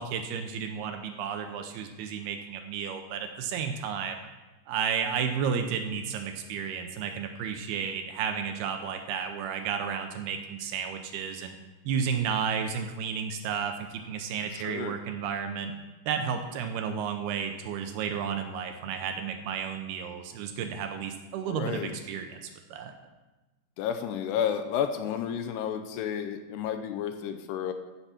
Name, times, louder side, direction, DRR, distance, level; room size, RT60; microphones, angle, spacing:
voice 1, 0.0-4.2 4.7-11.5 11.8-15.7 16.1-22.9, right 7 dB, 80° right, 6 dB, 2.5 m, -32 dB
voice 2, 14.5-15.0 21.4-21.9 23.8-27.7, left 8 dB, 80° left, 7 dB, 2.6 m, -31 dB
14.5 x 6.8 x 5.8 m, 1.2 s
omnidirectional pair, 5.0 m